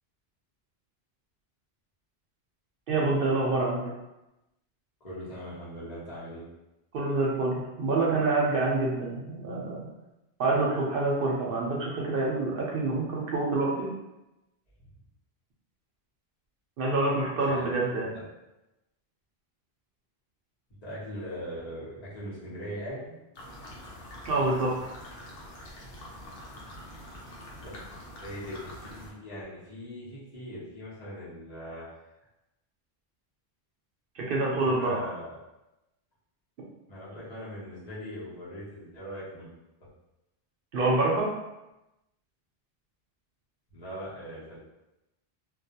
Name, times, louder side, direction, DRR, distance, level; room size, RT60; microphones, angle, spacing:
voice 1, 2.9-3.9 6.9-9.8 10.4-13.9 16.8-18.1 24.2-24.7 34.2-35.0 40.7-41.3, right 2 dB, 65° right, -3 dB, 0.7 m, -26 dB
voice 2, 5.0-6.4 17.5-17.7 18.1-18.2 20.8-23.1 28.2-31.9 34.8-35.3 36.9-39.5 43.7-44.4, equal, 45° left, -9 dB, 0.9 m, -40 dB
sound 1, 23.3-29.1, left 1 dB, 75° left, 0.8 m, -45 dB
2.3 x 2.1 x 2.7 m, 0.96 s
omnidirectional pair, 1.0 m